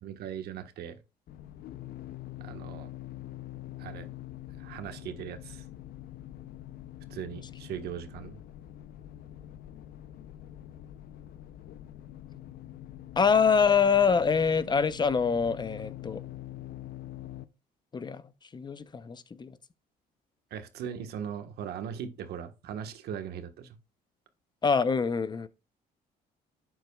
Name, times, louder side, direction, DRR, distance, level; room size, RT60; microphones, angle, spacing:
voice 1, 0.0-1.0 2.4-2.9 3.8-4.1 4.6-5.6 7.1-8.4 20.5-23.8, right 8 dB, 70° right, 1.4 m, -39 dB
sound 1, 1.3-17.5, left 13 dB, 65° left, 0.6 m, -44 dB
voice 2, 13.2-16.2 17.9-19.6 24.6-25.5, left 6 dB, 25° left, 0.7 m, -25 dB
11.5 x 8.0 x 2.4 m
cardioid pair, 110°, 17 cm